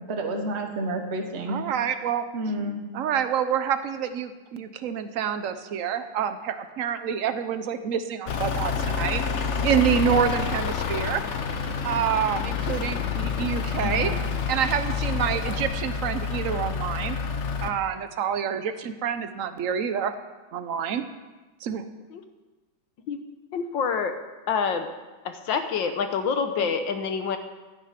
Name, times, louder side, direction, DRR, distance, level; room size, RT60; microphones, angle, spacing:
voice 1, 0.1-1.7 2.3-2.8 13.8-14.3, right 1 dB, 35° right, 3 dB, 1.4 m, -30 dB
voice 2, 1.5-2.2 2.9-9.2 9.6-11.2 11.8-14.1 14.5-17.2 17.6-20.1 20.5-21.1 21.6-21.8, right 8 dB, 60° right, 10 dB, 0.8 m, -27 dB
Truck / Idling, 8.3-17.7, left 6 dB, 55° left, 0.8 m, -28 dB
voice 3, 23.5-24.2 24.5-24.9 25.2-27.4, left 6 dB, 70° left, 7 dB, 1.7 m, -27 dB
15.5 x 9.9 x 5.1 m, 1.2 s
omnidirectional pair, 2.2 m